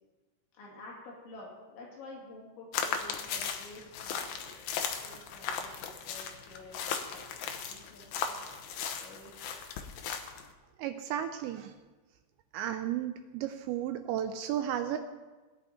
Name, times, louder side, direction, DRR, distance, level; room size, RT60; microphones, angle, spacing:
voice 1, 0.5-9.6, left 2 dB, 70° left, -4 dB, 4.8 m, -51 dB
sound 1, 2.7-10.5, left 7 dB, 85° left, 2.0 m, -37 dB
voice 2, 10.8-11.7 12.5-15.0, right 10 dB, 80° right, 7 dB, 2.6 m, -33 dB
18.0 x 10.5 x 4.3 m, 1.3 s
omnidirectional pair, 5.6 m